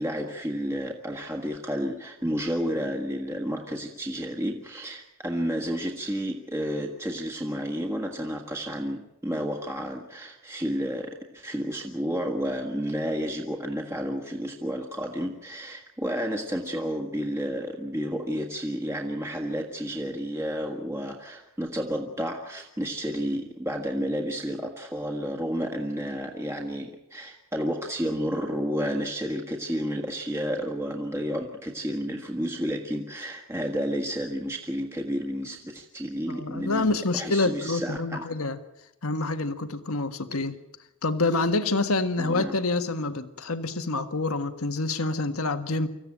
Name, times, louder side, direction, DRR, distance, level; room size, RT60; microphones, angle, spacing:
voice 1, 0.0-36.9 37.1-38.3 42.2-42.6, equal, 10° right, 1 dB, 1.6 m, -31 dB
voice 2, 36.3-38.6 39.0-40.6 41.0-45.9, left 3 dB, 80° left, 8 dB, 1.5 m, -27 dB
25.5 x 15.0 x 8.9 m, 0.93 s
head